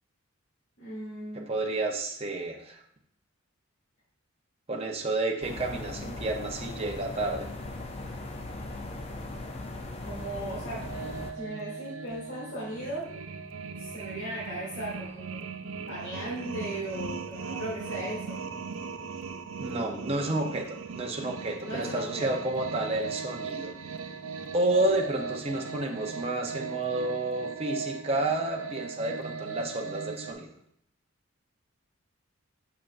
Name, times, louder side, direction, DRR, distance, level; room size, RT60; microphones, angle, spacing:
voice 1, 0.8-1.5 6.0-6.3 10.0-13.2 13.8-18.4 19.7-20.7 21.6-22.3, right 1 dB, 55° left, -10 dB, 2.7 m, -38 dB
voice 2, 1.3-2.8 4.7-7.5 19.6-20.7 20.9-23.7 24.5-30.5, right 2 dB, 30° right, 1 dB, 0.7 m, -30 dB
sound 1, 5.4-11.3, left 2 dB, 30° left, 0.5 m, -39 dB
sound 2, 10.8-30.3, right 5 dB, 85° right, 0.5 m, -38 dB
7.1 x 5.9 x 2.5 m, 0.71 s
head